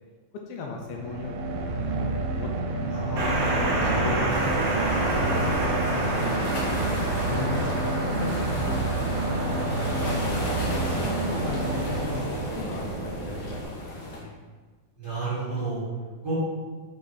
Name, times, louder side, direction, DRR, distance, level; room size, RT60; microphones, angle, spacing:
voice 1, 0.5-1.3 1.6-2.5 2.9-4.4 5.4-6.1 6.3-9.9 10.8-11.0 11.3-14.4, left 4 dB, 80° left, 1 dB, 2.3 m, -39 dB
sound 1, 0.8-12.7, right 2 dB, 80° right, 2.4 m, -29 dB
sound 2, 3.2-13.6, right 2 dB, 60° right, 2.4 m, -29 dB
sound 3, 4.3-14.2, left 1 dB, 65° left, 2.0 m, -36 dB
voice 2, 5.7-6.2 15.0-15.8 16.2-16.3, right 3 dB, 40° right, -11 dB, 1.5 m, -31 dB
6.9 x 3.2 x 4.3 m, 1.4 s
omnidirectional pair, 4.4 m